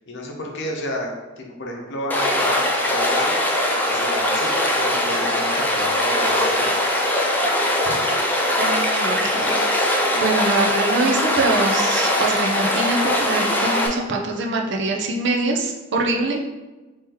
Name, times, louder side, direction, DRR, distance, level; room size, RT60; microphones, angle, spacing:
voice 1, 0.1-3.4 3.9-6.7 7.8-7.9, left 1 dB, 60° left, 0 dB, 0.7 m, -31 dB
Stream, 2.1-13.9, left 1 dB, 10° left, 0.4 m, -21 dB
voice 2, 8.6-16.4, right 2 dB, 60° right, 1 dB, 0.5 m, -24 dB
2.9 x 2.9 x 3.7 m, 1.1 s
head